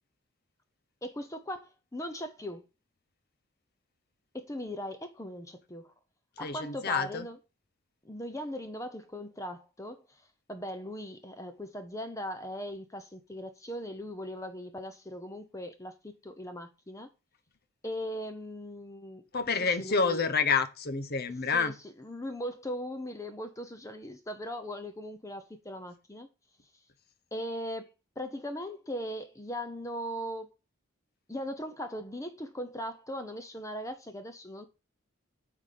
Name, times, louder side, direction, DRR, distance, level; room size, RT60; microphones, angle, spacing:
voice 1, 1.0-2.6 4.3-5.9 6.4-7.4 8.0-10.2 10.5-17.1 17.8-19.2 19.8-20.2 21.5-26.3 27.3-30.5 31.3-34.6, equal, 15° left, 0.8 m, -39 dB
voice 2, 6.4-7.3 19.3-21.7, left 5 dB, 50° left, 0.8 m, -28 dB
8.9 x 3.7 x 6.6 m
head